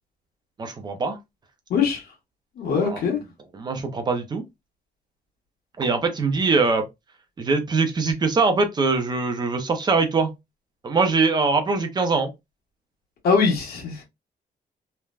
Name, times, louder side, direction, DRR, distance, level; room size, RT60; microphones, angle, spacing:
voice 1, 0.6-1.2 2.8-3.0 3.5-4.4 5.8-6.9 7.4-10.3 10.8-12.3, right 4 dB, 25° right, 0.5 m, -22 dB
voice 2, 1.7-2.1 2.6-3.2 13.2-14.0, left 5 dB, 80° left, 1.2 m, -22 dB
3.2 x 2.1 x 2.3 m
wide cardioid pair, 175°, 16 cm